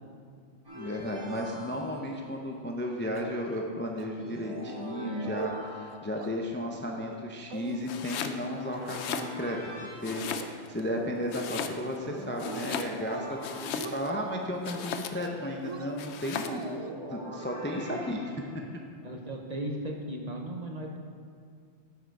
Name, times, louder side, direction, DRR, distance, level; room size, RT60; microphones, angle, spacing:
sound 1, 0.6-2.2 4.2-6.3 8.5-10.0 12.0-14.1 16.4-18.6, right 1 dB, 20° right, 2.6 m, -42 dB
voice 1, 0.7-9.7 10.0-16.6 17.1-18.3, left 1 dB, 15° left, 1 dB, 0.5 m, -34 dB
sound 2, 3.2-3.7 4.0-4.1 4.4-4.7 5.1-5.6 5.9-6.3 6.7-7.2 7.5-8.2 8.6-9.0 9.4-9.7 10.2-11.7 12.0-12.6 13.0-13.4 13.6-14.3 14.7-15.3 15.6-16.9, right 6 dB, 60° right, 0.3 m, -44 dB
voice 2, 5.0-5.4 17.7-17.8 19.0-21.0, right 1 dB, 40° right, 1 dB, 0.8 m, -36 dB
Domestic sounds home sounds, 7.8-8.4 8.8-9.7 10.0-10.8 11.3-12.0 12.4-14.2 14.6-15.4 16.0-16.6, left 7 dB, 75° left, 0.9 m, -36 dB
9.8 x 6.4 x 4.7 m, 2.2 s
omnidirectional pair, 1.2 m